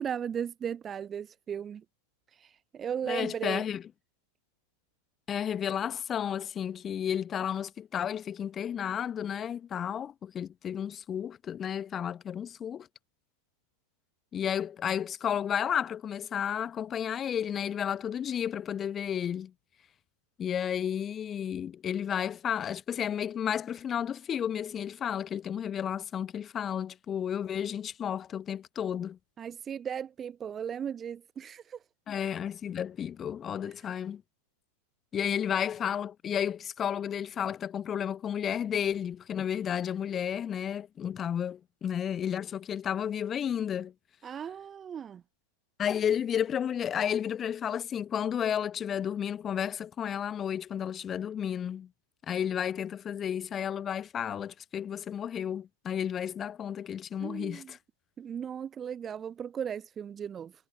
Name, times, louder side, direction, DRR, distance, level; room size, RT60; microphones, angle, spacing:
voice 1, 0.0-1.8 2.4-3.7 29.4-31.8 44.2-45.2 57.2-57.7 58.2-60.5, right 8 dB, 25° right, 0.5 m, -36 dB
voice 2, 3.1-3.8 5.3-12.9 14.3-19.5 20.4-29.2 32.1-34.2 35.1-43.9 45.8-51.9 52.2-57.8, left 9 dB, 25° left, 1.1 m, -32 dB
figure-of-eight pair, 90°, 0 cm